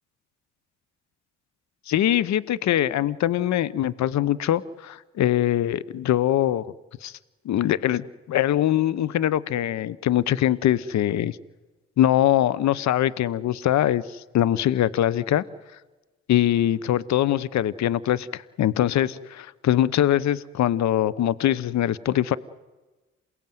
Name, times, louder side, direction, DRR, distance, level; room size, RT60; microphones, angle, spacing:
voice 1, 1.9-6.6 7.0-7.1 7.4-11.4 12.0-15.4 16.3-22.4, left 12 dB, 60° left, 19 dB, 0.9 m, -23 dB
28.0 x 17.0 x 9.3 m, 1.2 s
hypercardioid pair, 45°, 31 cm